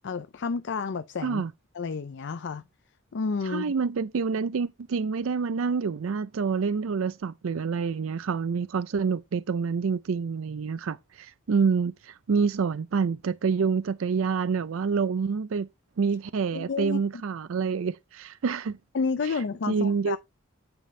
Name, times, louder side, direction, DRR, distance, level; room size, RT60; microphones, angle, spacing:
voice 1, 0.0-1.4 1.7-2.6 3.1-3.7 16.5-17.0 18.9-20.2, left 4 dB, 60° left, 0.5 m, -30 dB
voice 2, 3.4-15.7 16.0-18.8 19.2-20.2, right 5 dB, 75° right, 0.4 m, -27 dB
9.0 x 5.1 x 3.2 m
head